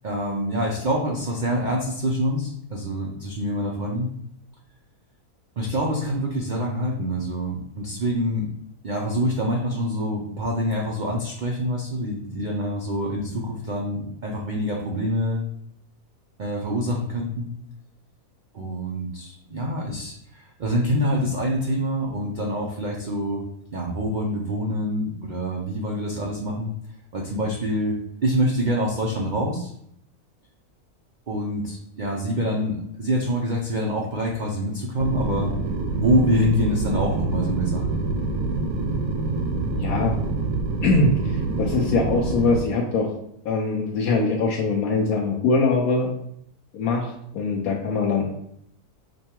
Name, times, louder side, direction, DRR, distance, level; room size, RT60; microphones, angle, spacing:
voice 1, 0.0-4.1 5.6-8.5 8.8-15.5 16.4-17.5 18.5-23.4 23.7-26.7 27.1-29.7 31.3-35.5 36.0-38.0, equal, 85° right, -1 dB, 0.4 m, -26 dB
sound 1, 35.0-42.6, right 3 dB, 70° right, 1.0 m, -26 dB
voice 2, 39.8-40.1 40.8-43.1 43.4-46.1 46.7-48.3, left 3 dB, 75° left, -2 dB, 1.0 m, -22 dB
5.2 x 2.3 x 4.3 m, 0.72 s
omnidirectional pair, 1.6 m